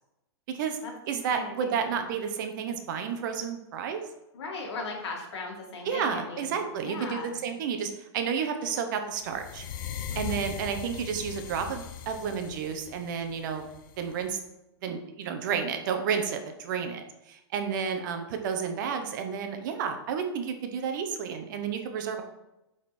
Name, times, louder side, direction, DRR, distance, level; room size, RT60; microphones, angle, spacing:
voice 1, 0.5-0.8 1.1-4.0 5.9-9.6 10.1-13.7 14.0-14.4 14.8-17.0 17.3-22.2, right 7 dB, 45° right, 6 dB, 0.9 m, -31 dB
voice 2, 1.3-2.0 4.3-7.4 10.1-10.4, left 3 dB, 70° left, -1 dB, 2.2 m, -38 dB
sound 1, 9.3-14.3, left 9 dB, 50° left, 0.6 m, -39 dB
7.7 x 3.9 x 4.3 m, 0.92 s
supercardioid pair, 165°, 15 cm